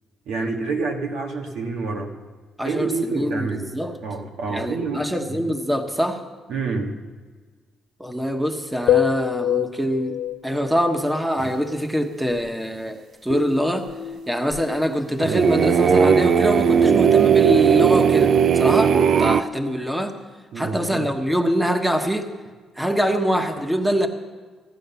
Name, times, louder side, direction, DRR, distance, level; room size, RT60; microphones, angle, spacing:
voice 1, 0.3-2.1 2.6-3.7 4.0-5.4 6.5-7.0 20.5-21.1, right 3 dB, 85° right, 2 dB, 1.6 m, -27 dB
voice 2, 2.6-3.5 3.7-3.9 4.5-6.2 8.0-10.2 10.4-13.9 14.3-20.2 20.5-22.3 22.8-24.1, equal, 5° right, 5 dB, 1.2 m, -24 dB
sound 1, 8.9-11.1 13.3-14.8, left 11 dB, 75° left, 0.4 m, -26 dB
sound 2, 11.4-11.5 15.2-19.4, right 7 dB, 60° right, 0.5 m, -17 dB
16.0 x 9.0 x 7.0 m, 1.4 s
cardioid pair, 90°, 0 cm